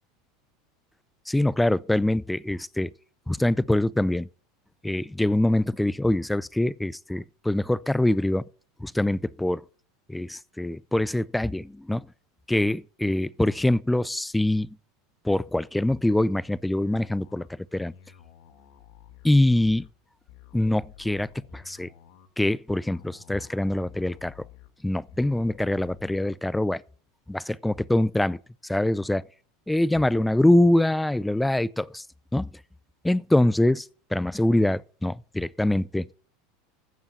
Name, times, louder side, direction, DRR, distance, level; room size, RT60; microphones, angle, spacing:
voice 1, 1.3-2.9 3.3-4.3 4.8-8.4 8.8-9.6 10.1-12.1 12.5-14.8 15.2-17.5 17.7-17.9 19.2-19.9 20.5-21.9 22.4-24.3 24.8-26.8 27.3-28.4 28.6-29.3 29.7-32.0 32.3-32.5 33.0-36.1, left 1 dB, 5° left, 0.5 m, -24 dB
sound 1, 16.7-26.3, left 11 dB, 70° left, 3.5 m, -52 dB
15.5 x 7.0 x 5.4 m
supercardioid pair, 105°, 0 cm